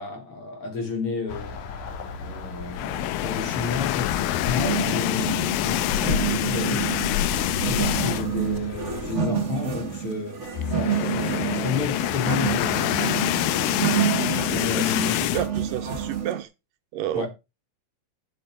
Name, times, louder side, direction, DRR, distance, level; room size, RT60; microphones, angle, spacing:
voice 1, 0.0-1.6 2.2-7.0 7.5-13.0 14.5-15.3 17.1-17.3, left 4 dB, 40° left, 3.5 m, -31 dB
sound 1, 1.3-9.2, left 6 dB, 65° left, 2.7 m, -34 dB
sound 2, 2.7-8.5 8.8-9.0 9.3-9.4 10.4-15.5, left 14 dB, 90° left, 2.5 m, -26 dB
sound 3, 4.6-16.4, right 8 dB, 50° right, 0.8 m, -29 dB
voice 2, 15.3-16.5 16.9-17.3, right 12 dB, 80° right, 2.5 m, -30 dB
12.0 x 7.3 x 4.8 m
omnidirectional pair, 3.9 m